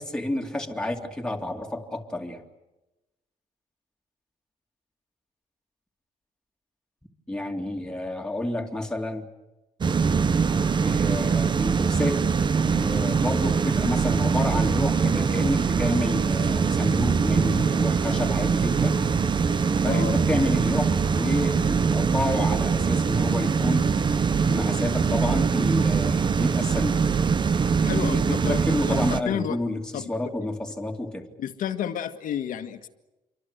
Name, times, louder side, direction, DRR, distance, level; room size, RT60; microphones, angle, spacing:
voice 1, 0.0-2.4 7.3-9.3 10.8-12.2 12.7-19.0 19.8-23.9 24.5-27.1 27.9-31.3, left 1 dB, 5° left, 2 dB, 2.7 m, -30 dB
sound 1, 9.8-29.2, right 5 dB, 30° right, 1.1 m, -23 dB
voice 2, 27.8-29.0 29.3-29.6 29.9-30.1 31.4-32.9, left 9 dB, 70° left, 6 dB, 1.8 m, -31 dB
28.0 x 24.0 x 8.1 m, 1.0 s
cardioid pair, 145°, 14 cm